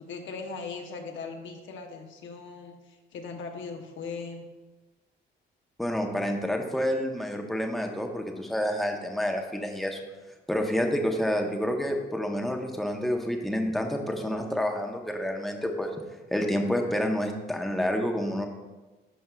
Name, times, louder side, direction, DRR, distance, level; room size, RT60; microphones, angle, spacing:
voice 1, 0.0-4.4, left 4 dB, 75° left, 3 dB, 0.9 m, -39 dB
voice 2, 5.8-10.0 10.5-15.9 16.3-18.5, equal, ahead, 2 dB, 0.8 m, -28 dB
11.0 x 4.6 x 2.3 m, 1.2 s
cardioid pair, 90°, 20 cm